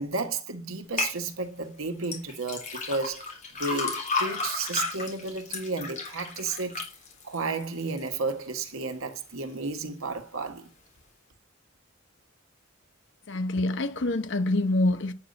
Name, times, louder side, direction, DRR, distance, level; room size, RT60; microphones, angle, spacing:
voice 1, 0.0-6.8 7.2-10.7, right 3 dB, 85° right, 1.5 m, -32 dB
sound 1, 1.0-1.1 2.0-8.2 8.6-9.1 9.6-9.7, left 4 dB, 35° left, 3.5 m, -33 dB
voice 2, 13.3-15.1, left 2 dB, 60° left, 0.9 m, -26 dB
9.2 x 8.2 x 5.3 m
head